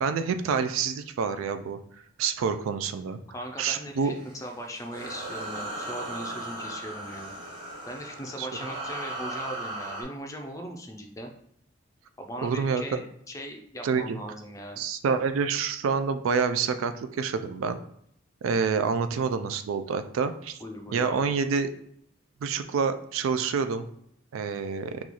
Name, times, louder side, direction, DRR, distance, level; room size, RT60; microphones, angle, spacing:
voice 1, 0.0-1.8 2.2-3.2 3.6-4.1 8.4-8.5 12.4-13.0 13.8-14.2 14.8-17.8 18.4-20.6 20.9-21.7 22.4-23.9 24.3-25.0, right 5 dB, 90° right, 10 dB, 0.3 m, -27 dB
voice 2, 3.3-7.3 7.9-11.3 12.2-14.8 20.6-21.3, equal, 15° left, 2 dB, 0.4 m, -39 dB
sound 1, 4.0-10.0, right 1 dB, 25° right, 0.9 m, -37 dB
3.0 x 2.3 x 3.9 m, 0.70 s
head